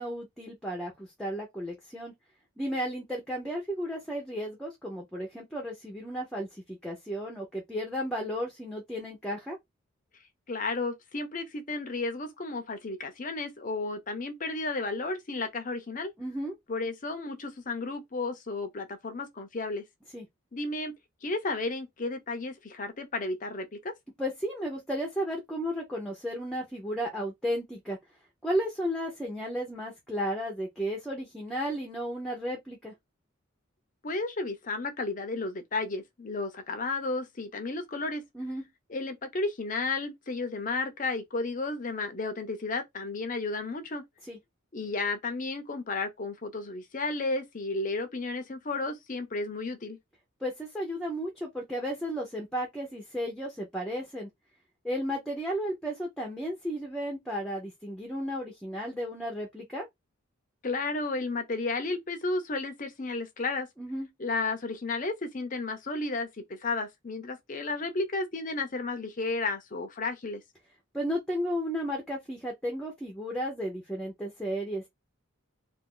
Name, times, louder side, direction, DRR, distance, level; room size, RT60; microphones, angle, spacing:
voice 1, 0.0-2.1 2.6-9.6 16.2-16.6 20.1-20.2 24.2-28.0 28.4-32.9 38.3-38.6 44.3-44.4 50.4-54.3 54.8-59.8 63.8-64.1 70.9-74.9, equal, 5° left, 0.7 m, -33 dB
voice 2, 10.5-16.1 16.7-19.8 20.5-20.9 21.2-23.9 34.0-38.2 38.9-44.0 44.7-50.0 60.6-63.7 64.2-70.4, left 3 dB, 40° left, 0.6 m, -33 dB
2.6 x 2.5 x 3.7 m
head